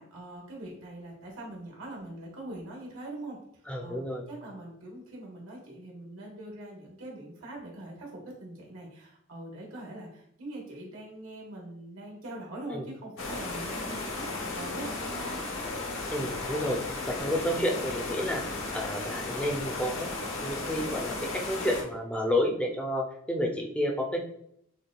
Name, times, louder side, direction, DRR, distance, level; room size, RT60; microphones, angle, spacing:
voice 1, 0.0-3.4 3.8-15.4, right 1 dB, 85° right, -2 dB, 1.2 m, -43 dB
voice 2, 3.7-4.2 12.7-12.9 16.1-20.1 20.4-24.2, left 1 dB, 5° left, 1 dB, 0.5 m, -30 dB
sound 1, 13.2-21.8, left 3 dB, 80° left, 0.9 m, -35 dB
6.5 x 2.2 x 2.3 m, 0.72 s
head